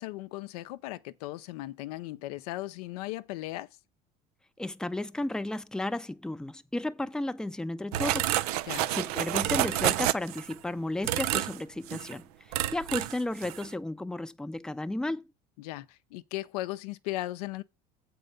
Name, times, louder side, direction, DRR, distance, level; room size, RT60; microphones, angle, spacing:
voice 1, 0.0-3.7 8.6-8.9 15.6-17.6, left 17 dB, 90° left, 0.6 m, -37 dB
voice 2, 4.6-8.4 8.9-15.3, left 1 dB, 5° left, 0.5 m, -33 dB
sound 1, 7.9-10.5 11.0-11.6 11.9-12.1 12.5-13.2 13.4-13.7, right 14 dB, 90° right, 0.5 m, -29 dB
7.7 x 4.6 x 6.5 m
supercardioid pair, 95°, 19 cm